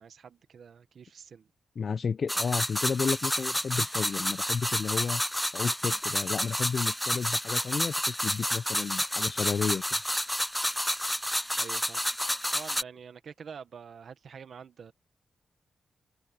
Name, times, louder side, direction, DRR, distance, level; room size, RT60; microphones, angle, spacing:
voice 1, 0.0-1.5 11.6-12.0 12.5-14.9, right 6 dB, 70° right, 1.5 m, -46 dB
voice 2, 1.8-5.2 5.5-9.8, left 5 dB, 60° left, 0.6 m, -32 dB
sound 1, 2.3-12.8, equal, 5° left, 0.5 m, -30 dB
open air
cardioid pair, 60°, 0 cm